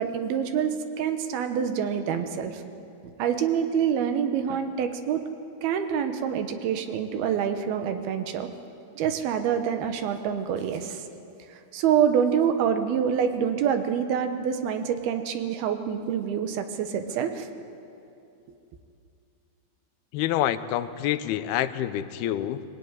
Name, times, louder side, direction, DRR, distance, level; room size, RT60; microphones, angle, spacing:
voice 1, 0.0-2.6 3.0-5.2 5.6-8.5 9.0-11.0 11.7-17.5, right 8 dB, 80° right, 7 dB, 3.1 m, -26 dB
voice 2, 20.1-22.6, left 12 dB, 85° left, 12 dB, 2.7 m, -27 dB
23.0 x 17.0 x 9.6 m, 2.6 s
omnidirectional pair, 4.4 m